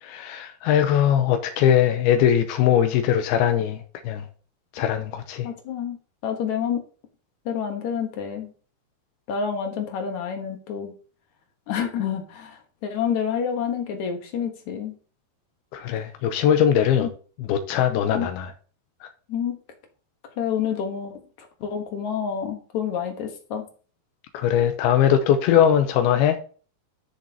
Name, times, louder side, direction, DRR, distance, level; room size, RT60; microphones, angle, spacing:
voice 1, 0.0-4.3 4.7-5.5 15.7-17.1 17.4-18.5 24.3-26.4, left 9 dB, 85° left, 2.5 m, -21 dB
voice 2, 5.4-6.0 6.2-6.8 7.5-8.5 9.3-10.9 11.7-15.0 17.0-17.1 18.1-18.3 19.3-19.6 20.4-23.7, left 7 dB, 65° left, 2.0 m, -28 dB
13.0 x 6.6 x 2.8 m
omnidirectional pair, 4.6 m